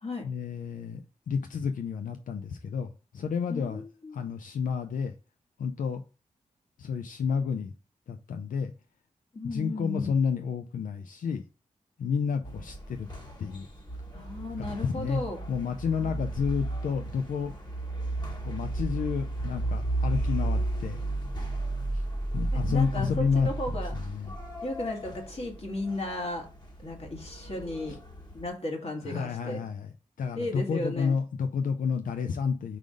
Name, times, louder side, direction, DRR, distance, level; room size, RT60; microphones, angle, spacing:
voice 1, 0.2-1.0 1.3-3.8 4.1-5.1 5.6-6.0 6.8-7.7 8.1-8.7 9.4-11.4 12.0-13.1 13.4-13.7 14.6-15.2 15.5-17.5 18.4-21.0 21.9-22.0 22.3-23.5 23.9-24.3 29.0-29.9 30.2-32.8, left 6 dB, 85° left, 6 dB, 0.5 m, -30 dB
voice 2, 3.5-4.2 9.3-10.1 14.1-15.4 16.0-16.2 22.5-23.9 24.3-24.4 24.6-26.5 26.8-28.0 28.3-29.6 30.4-31.2, left 1 dB, 50° left, 1 dB, 1.9 m, -35 dB
sound 1, 12.4-28.5, right 2 dB, 30° left, 1.7 m, -34 dB
4.9 x 3.8 x 5.1 m, 0.34 s
cardioid pair, 60°, 13 cm